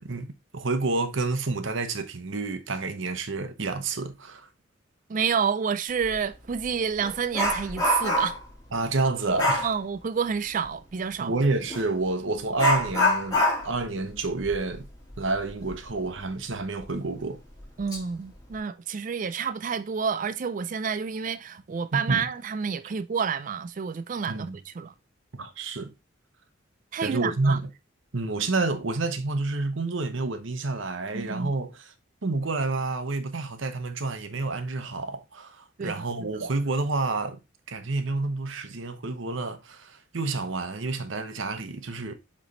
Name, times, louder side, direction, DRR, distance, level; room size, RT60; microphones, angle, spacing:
voice 1, 0.0-4.5 8.7-9.7 11.2-14.9 15.2-17.4 21.9-22.3 24.3-24.6 25.3-25.9 27.0-27.7 28.1-31.9 32.2-37.4 37.7-42.1, right 3 dB, 65° right, 0.9 m, -29 dB
voice 2, 5.1-8.4 9.6-11.3 17.8-24.9 26.9-27.6 31.1-31.5 35.8-36.3, right 6 dB, 40° right, 0.3 m, -29 dB
Dog, 6.0-6.2 6.6-8.5 9.4-9.7 11.7-11.9 12.6-15.9 16.2-16.3 16.8-16.9 17.6-18.0 18.3-18.6, left 1 dB, 20° left, 1.9 m, -26 dB
7.7 x 3.3 x 4.0 m
head